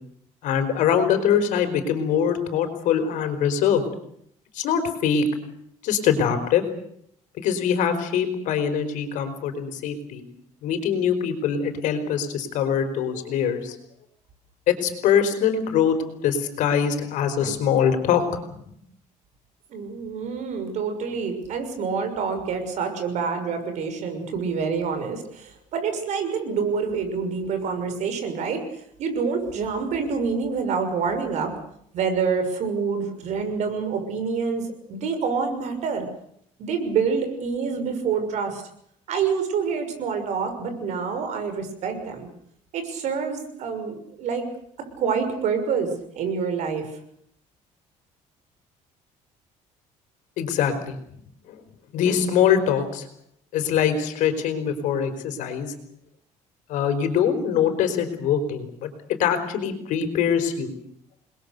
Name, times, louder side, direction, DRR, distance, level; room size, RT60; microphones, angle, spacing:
voice 1, 0.4-3.8 4.5-5.2 5.8-6.6 7.4-10.2 10.6-13.8 14.7-16.0 16.2-18.3 18.5-18.7 50.4-51.0 51.5-51.6 51.9-53.0 53.5-55.7 56.7-58.9 59.2-60.7, left 8 dB, 70° left, 8 dB, 4.7 m, -23 dB
voice 2, 19.7-28.6 29.0-31.5 31.9-36.1 36.6-38.6 39.1-42.3 42.7-44.5 45.0-46.9, right 5 dB, 60° right, 7 dB, 6.2 m, -27 dB
29.0 x 21.5 x 6.8 m, 0.69 s
cardioid pair, 135°, 14 cm